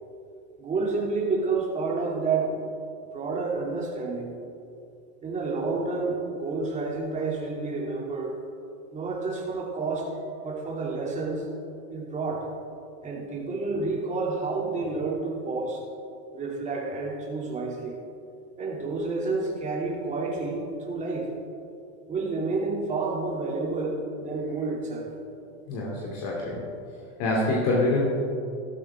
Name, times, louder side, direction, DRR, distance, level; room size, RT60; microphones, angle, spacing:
voice 1, 0.6-2.6 3.1-4.3 5.2-8.4 8.9-10.1 10.4-11.5 11.9-12.5 13.0-15.8 16.3-18.0 18.6-21.3 22.1-25.1 25.7-25.8, right 3 dB, 20° right, -3 dB, 2.9 m, -29 dB
voice 2, 25.7-26.6 27.2-28.0, left 2 dB, 55° left, -4 dB, 2.9 m, -25 dB
14.0 x 13.0 x 3.7 m, 2.5 s
supercardioid pair, 135°, 33 cm